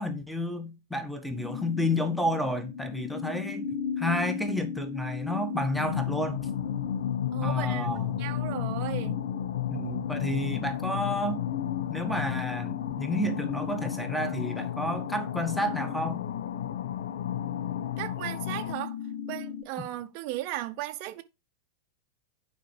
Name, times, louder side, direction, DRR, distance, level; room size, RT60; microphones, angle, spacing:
voice 1, 0.0-3.7 4.0-6.5 7.4-8.3 9.7-11.4 11.9-16.2, left 1 dB, ahead, 1.5 m, -31 dB
sound 1, 1.3-19.6, left 7 dB, 45° left, 1.4 m, -37 dB
sound 2, 5.7-18.7, left 11 dB, 60° left, 0.5 m, -33 dB
voice 2, 7.3-9.3 18.0-19.0 19.3-21.2, right 15 dB, 45° right, 0.8 m, -36 dB
11.0 x 5.2 x 4.9 m
figure-of-eight pair, 90°, 0 cm